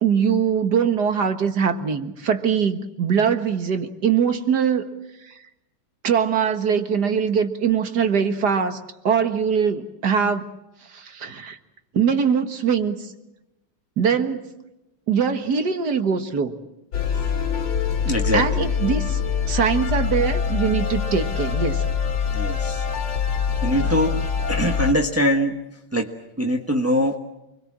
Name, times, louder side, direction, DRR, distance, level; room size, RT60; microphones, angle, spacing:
voice 1, 0.0-4.9 5.3-5.4 6.0-10.5 10.9-11.6 11.9-13.1 14.0-14.4 15.1-16.6 18.3-19.2 19.5-21.9, right 7 dB, 50° right, 8 dB, 2.0 m, -22 dB
sound 1, 16.9-24.9, left 7 dB, 70° left, 2.8 m, -24 dB
voice 2, 18.0-18.7 22.3-22.9 23.6-25.6 25.9-26.1 26.4-27.2, equal, 10° right, 2 dB, 0.8 m, -23 dB
29.0 x 22.0 x 7.5 m, 0.95 s
omnidirectional pair, 2.4 m